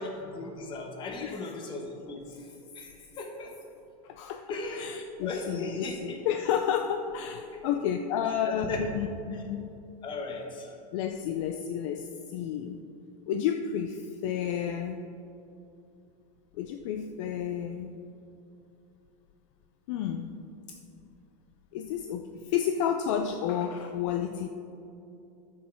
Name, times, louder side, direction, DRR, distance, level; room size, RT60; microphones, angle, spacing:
voice 1, 0.0-2.5 2.7-3.5 4.5-6.2 8.4-8.8 10.0-10.8, left 2 dB, 25° left, 2 dB, 1.1 m, -37 dB
voice 2, 1.2-1.5 2.3-2.4 4.0-4.5 4.7-9.7 10.9-12.8 13.3-15.0 16.5-17.9 19.9-20.4 21.7-24.5, left 8 dB, 50° left, 6 dB, 0.4 m, -31 dB
9.2 x 6.4 x 4.5 m, 2.8 s
supercardioid pair, 150°, 21 cm